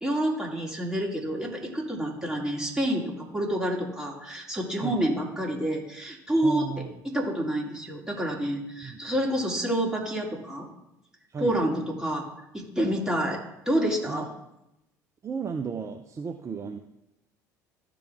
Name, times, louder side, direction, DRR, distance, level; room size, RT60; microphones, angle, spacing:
voice 1, 0.0-10.7 11.4-12.3 12.5-13.4 13.7-14.3, right 1 dB, 5° right, -2 dB, 2.8 m, -28 dB
voice 2, 6.4-6.9 8.8-9.0 11.3-11.6 14.1-14.3 15.2-16.8, right 5 dB, 30° right, 5 dB, 0.7 m, -34 dB
14.0 x 5.1 x 3.6 m, 0.85 s
hypercardioid pair, 65°, 10 cm